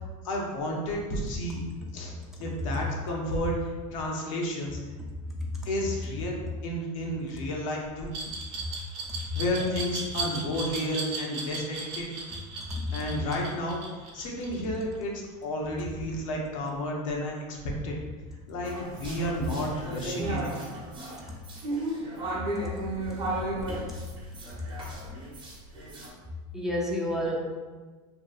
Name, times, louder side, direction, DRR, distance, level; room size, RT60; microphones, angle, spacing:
voice 1, 0.2-1.6 1.9-2.1 2.4-3.5 3.9-4.8 5.7-6.4 6.6-8.1 9.3-12.1 12.9-13.8 14.1-17.6 17.8-18.0 18.5-20.7, equal, 85° left, -1 dB, 0.7 m, -31 dB
Glass, 8.1-15.0, right 4 dB, 65° right, 0.8 m, -36 dB
voice 2, 12.6-13.1 26.5-27.4, left 1 dB, 5° right, -4 dB, 0.4 m, -30 dB
sound 1, 18.7-26.1, right 1 dB, 30° right, 0.8 m, -34 dB
2.7 x 2.6 x 2.3 m, 1.3 s
supercardioid pair, 125°, 17 cm